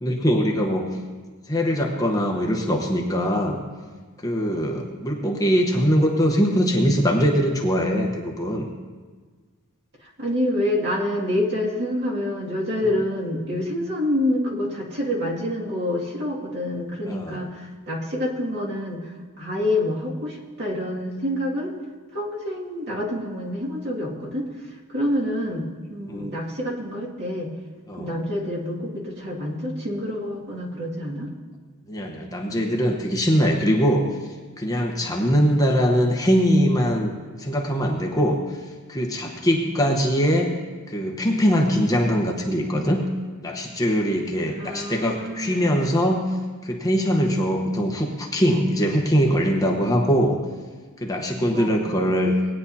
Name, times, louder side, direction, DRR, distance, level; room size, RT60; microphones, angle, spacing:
voice 1, 0.0-0.9 1.5-3.6 4.2-8.7 17.1-17.4 26.1-26.3 27.9-28.2 31.9-37.1 37.4-40.5 40.9-43.0 43.4-46.4 46.6-50.4 51.0-52.3, equal, 15° left, 0 dB, 1.0 m, -22 dB
voice 2, 10.0-19.1 19.4-21.7 22.1-24.5 24.9-25.6 25.9-27.5 28.0-31.3 44.6-45.8 51.5-51.9, left 1 dB, 50° right, -4 dB, 2.2 m, -27 dB
19.0 x 9.7 x 2.8 m, 1.4 s
head